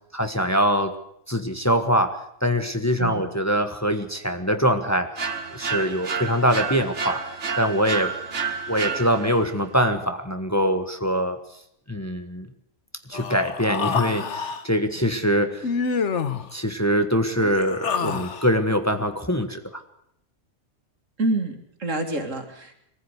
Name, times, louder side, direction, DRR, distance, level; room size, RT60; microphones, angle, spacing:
voice 1, 0.1-1.0 1.3-5.1 5.5-7.2 7.6-8.1 8.7-11.4 11.9-12.5 13.1-15.7 16.5-19.8, equal, 15° left, 6 dB, 1.4 m, -23 dB
sound 1, 5.2-9.5, right 5 dB, 65° right, 1.8 m, -30 dB
Human voice, 13.1-14.6 15.6-16.5 17.4-18.5, left 5 dB, 65° left, 1.4 m, -27 dB
voice 2, 21.2-22.7, right 2 dB, 85° right, 5 dB, 2.8 m, -27 dB
22.5 x 15.0 x 8.2 m, 0.75 s
omnidirectional pair, 1.3 m